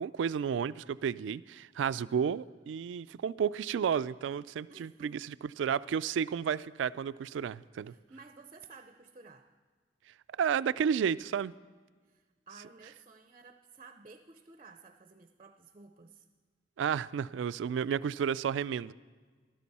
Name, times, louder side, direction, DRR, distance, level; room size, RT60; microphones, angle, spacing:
voice 1, 0.0-7.9 10.4-11.5 16.8-18.9, right 7 dB, 90° right, 17 dB, 0.3 m, -32 dB
voice 2, 4.7-5.2 7.8-9.5 12.0-16.3, right 4 dB, 30° right, 8 dB, 0.5 m, -54 dB
14.5 x 12.5 x 4.2 m, 1.5 s
head